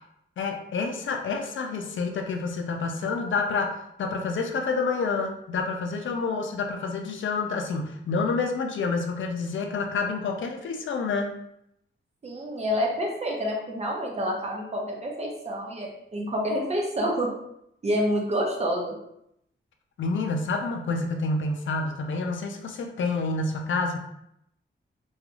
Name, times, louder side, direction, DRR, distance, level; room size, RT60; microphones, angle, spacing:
voice 1, 0.4-11.3 20.0-24.0, left 4 dB, 70° left, 4 dB, 0.4 m, -28 dB
voice 2, 12.2-17.3 17.8-19.0, equal, 30° right, -1 dB, 0.5 m, -28 dB
3.0 x 2.3 x 2.4 m, 0.77 s
wide cardioid pair, 180°, 20 cm